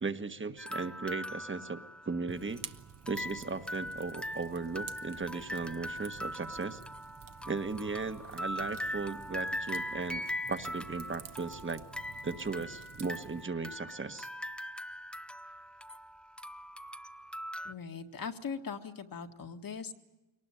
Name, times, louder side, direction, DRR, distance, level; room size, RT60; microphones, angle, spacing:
voice 1, 0.0-1.8 2.0-2.7 3.1-6.8 7.4-10.2 10.5-11.8 12.2-14.3, right 4 dB, 25° right, 9 dB, 1.5 m, -37 dB
sound 1, 0.6-2.6 3.1-17.7, left 1 dB, ahead, 0.9 m, -41 dB
Fire, 2.3-13.4, right 7 dB, 40° right, 1.2 m, -51 dB
voice 2, 17.7-19.9, left 6 dB, 45° left, 4 dB, 1.9 m, -40 dB
22.0 x 19.5 x 8.9 m, 1.0 s
cardioid pair, 75°, 48 cm